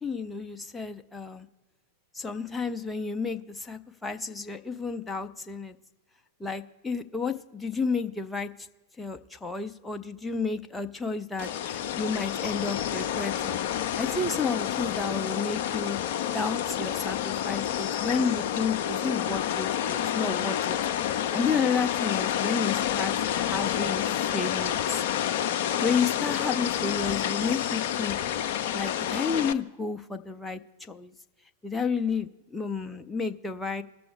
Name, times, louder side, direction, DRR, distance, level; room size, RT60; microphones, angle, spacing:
voice 1, 0.0-1.5 2.1-5.8 6.4-8.5 9.0-13.6 14.0-16.0 16.3-25.0 25.8-28.2 28.5-31.1 31.6-33.8, left 5 dB, 10° left, 6 dB, 0.6 m, -31 dB
sound 1, 11.4-29.5, left 10 dB, 50° left, 0.5 m, -29 dB
20.0 x 6.9 x 3.4 m, 1.2 s
figure-of-eight pair, 90°, 0 cm